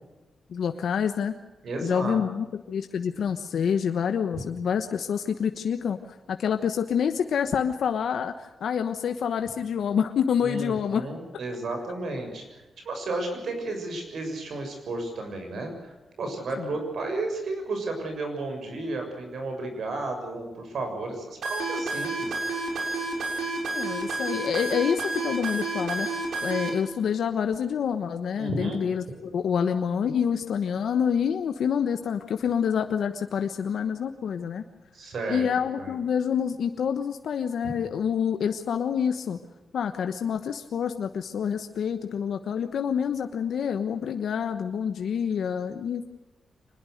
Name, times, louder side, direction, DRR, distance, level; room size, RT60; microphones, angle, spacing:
voice 1, 0.5-1.3 1.8-6.0 6.3-11.1 16.6-16.7 23.7-26.1 26.4-34.6 35.3-39.4 39.7-46.0, left 7 dB, 75° left, 7 dB, 1.2 m, -27 dB
voice 2, 1.6-2.2 10.4-22.4 28.4-28.8 34.9-35.4 35.8-35.9, right 2 dB, 65° right, 4 dB, 6.9 m, -33 dB
sound 1, 21.4-26.7, right 3 dB, 80° right, 7.3 m, -30 dB
25.0 x 21.0 x 6.7 m, 1.1 s
wide cardioid pair, 135°, 0 cm